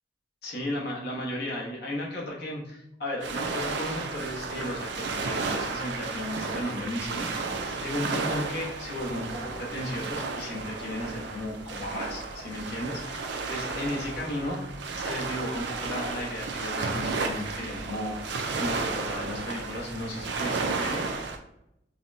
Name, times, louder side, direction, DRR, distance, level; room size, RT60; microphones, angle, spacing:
voice 1, 0.4-14.6 14.9-18.3 18.6-21.1, left 1 dB, 65° left, -3 dB, 1.1 m, -35 dB
sound 1, 3.2-21.4, right 3 dB, 75° right, 0.5 m, -33 dB
5.3 x 2.2 x 2.6 m, 0.81 s
head